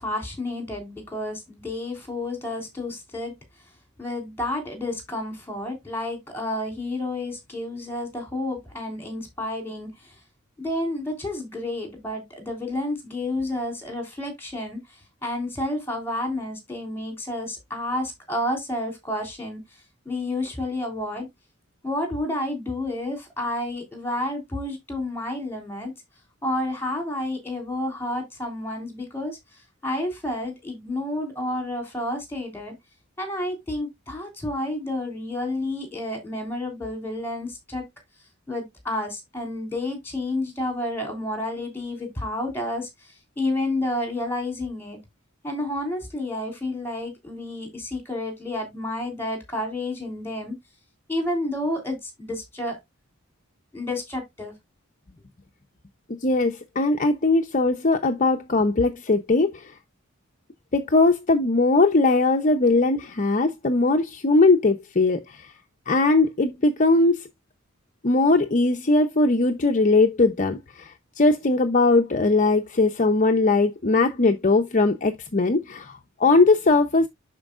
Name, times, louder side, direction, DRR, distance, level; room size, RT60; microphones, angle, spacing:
voice 1, 0.0-3.3 4.0-10.1 10.6-14.8 15.2-19.6 20.0-21.3 21.8-25.9 26.4-29.4 29.8-32.7 33.2-37.9 38.5-42.9 43.4-45.0 45.4-50.5 51.1-52.8 53.7-54.5, left 1 dB, 10° left, 3.3 m, -30 dB
voice 2, 56.2-59.7 60.7-65.5 65.9-67.3 68.0-77.1, left 3 dB, 40° left, 0.7 m, -20 dB
11.5 x 4.5 x 2.4 m
head